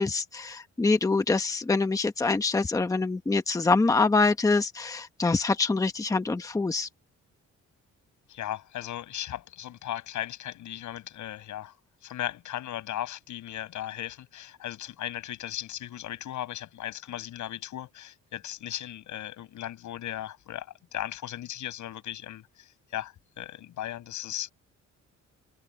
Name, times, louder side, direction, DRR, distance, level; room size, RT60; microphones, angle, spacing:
voice 1, 0.0-6.9, left 3 dB, 10° left, 1.0 m, -25 dB
voice 2, 8.3-11.8 12.0-24.5, left 12 dB, 85° left, 7.9 m, -37 dB
cardioid pair, 165°, 29 cm